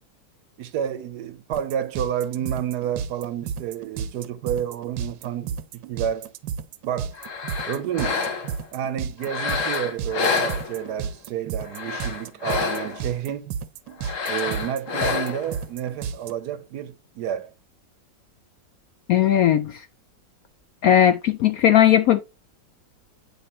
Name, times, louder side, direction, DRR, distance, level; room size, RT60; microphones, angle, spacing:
voice 1, 0.6-6.3 6.8-7.1 7.7-8.2 8.7-13.5 14.2-17.5, right 9 dB, 70° right, 1.1 m, -30 dB
sound 1, 1.5-16.3, right 7 dB, 85° right, 1.4 m, -32 dB
sound 2, 7.1-8.7 9.2-11.1 11.6-13.1 14.0-15.6, left 5 dB, 50° left, 1.2 m, -28 dB
voice 2, 19.1-19.8 20.8-22.2, left 10 dB, 75° left, 0.8 m, -17 dB
9.2 x 3.2 x 4.2 m
omnidirectional pair, 2.0 m